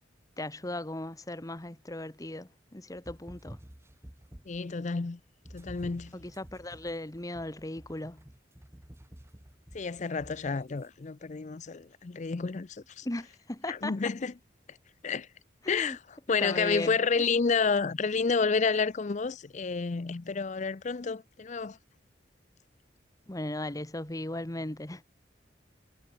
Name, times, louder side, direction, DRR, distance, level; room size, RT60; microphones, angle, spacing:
voice 1, 0.4-3.6 6.1-8.3 13.0-14.1 15.6-16.0 16.4-17.2 23.3-25.0, left 1 dB, 20° left, 1.2 m, -37 dB
sound 1, 2.9-4.7 5.4-10.9, equal, 15° right, 1.3 m, -50 dB
voice 2, 4.5-5.2 5.5-6.1 9.7-13.1 13.7-14.3 14.7-14.8 15.0-15.3 15.7-16.0 16.3-21.8, left 5 dB, 40° left, 0.5 m, -30 dB
head